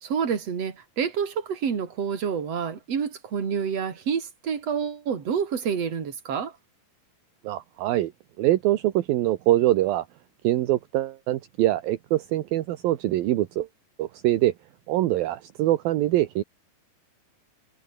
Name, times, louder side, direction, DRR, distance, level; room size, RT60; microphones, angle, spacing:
voice 1, 0.0-6.5, right 7 dB, 45° right, 3.9 m, -28 dB
voice 2, 7.4-8.1 8.4-10.0 10.4-13.7 14.0-14.5 14.9-16.4, right 15 dB, 75° right, 2.8 m, -23 dB
omnidirectional pair, 4.4 m